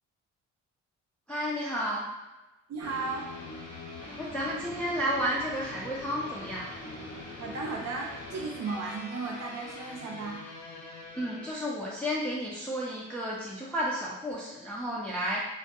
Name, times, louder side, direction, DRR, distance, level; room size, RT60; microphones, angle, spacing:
voice 1, 1.3-2.0 4.2-6.7 11.1-15.4, equal, 5° left, -5 dB, 0.4 m, -32 dB
voice 2, 2.7-3.3 7.4-10.4, right 4 dB, 55° right, -1 dB, 0.5 m, -35 dB
sound 1, 2.8-11.5, left 2 dB, 85° left, 0.9 m, -43 dB
2.1 x 2.1 x 2.8 m, 1.1 s
cardioid pair, 90°, 30 cm